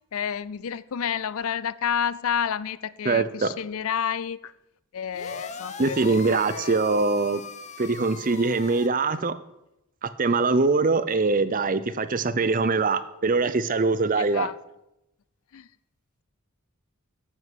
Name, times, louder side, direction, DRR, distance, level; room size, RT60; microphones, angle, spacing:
voice 1, 0.1-4.5 4.9-6.8 14.1-14.5 15.5-15.7, left 8 dB, 70° left, 0.4 m, -30 dB
voice 2, 3.0-3.5 5.8-7.4 7.8-9.3 10.0-14.5, right 3 dB, 40° right, 0.6 m, -23 dB
sound 1, 5.1-8.9, left 5 dB, 30° left, 0.9 m, -40 dB
9.7 x 7.5 x 8.0 m
head